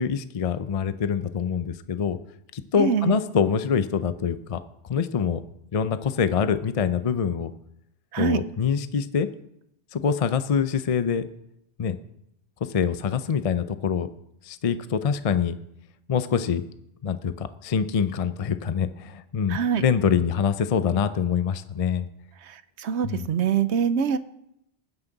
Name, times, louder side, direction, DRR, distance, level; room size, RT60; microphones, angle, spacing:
voice 1, 0.0-2.2 2.5-4.6 4.9-5.4 5.7-7.5 8.2-9.3 9.9-11.2 11.8-12.0 12.7-14.1 14.4-15.6 16.1-16.6 17.0-22.1 23.0-23.3, left 7 dB, 40° left, 11 dB, 0.5 m, -25 dB
voice 2, 2.8-3.2 8.1-8.4 19.5-19.9 22.4-24.2, right 7 dB, 75° right, 13 dB, 1.0 m, -24 dB
19.5 x 9.6 x 4.0 m, 0.79 s
omnidirectional pair, 1.2 m